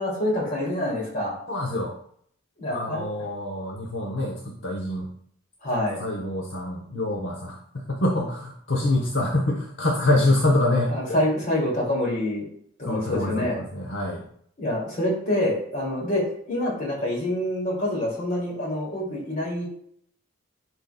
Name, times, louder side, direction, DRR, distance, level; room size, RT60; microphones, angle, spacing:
voice 1, 0.0-1.3 2.6-3.0 5.6-6.0 10.9-12.5 12.8-13.6 14.6-19.7, left 1 dB, 40° left, -3 dB, 2.6 m, -26 dB
voice 2, 1.5-1.9 2.7-5.1 6.0-11.2 12.8-14.2, left 1 dB, 65° left, -2 dB, 0.9 m, -26 dB
10.5 x 4.6 x 2.3 m, 0.65 s
head